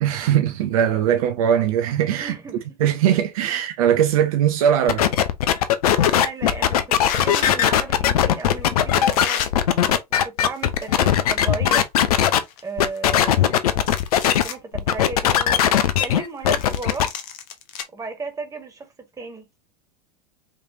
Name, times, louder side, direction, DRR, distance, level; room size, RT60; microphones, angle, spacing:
voice 1, 0.0-2.3 2.8-5.0, right 9 dB, 55° right, 0.7 m, -20 dB
voice 2, 2.2-2.7 3.5-3.6 6.0-9.5 10.1-11.9 12.6-13.9 14.1-17.1 17.9-19.5, right 4 dB, 15° right, 1.7 m, -35 dB
sound 1, 4.9-12.4 12.8-14.4 14.7-17.1, left 10 dB, 65° left, 0.7 m, -19 dB
sound 2, 6.0-6.3 7.0-7.5 8.4-8.5 9.1-9.5 10.4-11.1 11.4-11.5 12.0-12.1 12.4-13.4 13.8-14.6 15.1-15.2 16.6-17.8, left 9 dB, 40° left, 1.0 m, -32 dB
5.2 x 3.3 x 2.6 m
figure-of-eight pair, 90°, 21 cm